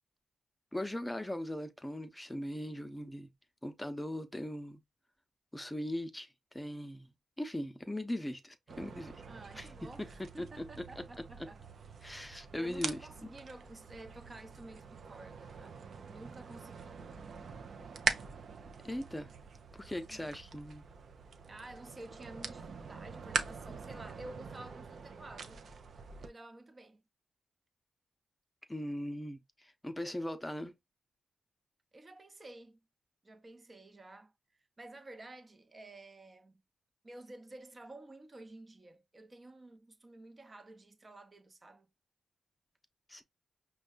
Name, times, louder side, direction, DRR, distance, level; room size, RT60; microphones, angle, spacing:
voice 1, 0.7-3.3 3.6-4.8 5.5-6.3 6.5-7.1 7.4-9.1 9.6-9.9 10.4-10.6 11.0-11.1 12.0-13.0 18.8-19.3 19.7-20.8 28.7-29.4 29.6-30.7 43.1-43.2, left 1 dB, 10° left, 0.7 m, -39 dB
sound 1, 8.7-26.3, right 5 dB, 65° right, 0.5 m, -43 dB
voice 2, 9.3-11.6 12.5-17.0 19.8-20.4 21.5-25.7 26.2-27.0 30.1-30.2 31.9-32.8 33.2-34.3 34.8-36.6 37.0-41.9, right 2 dB, 35° right, 0.7 m, -52 dB
5.3 x 2.3 x 2.4 m
supercardioid pair, 55°, 0 cm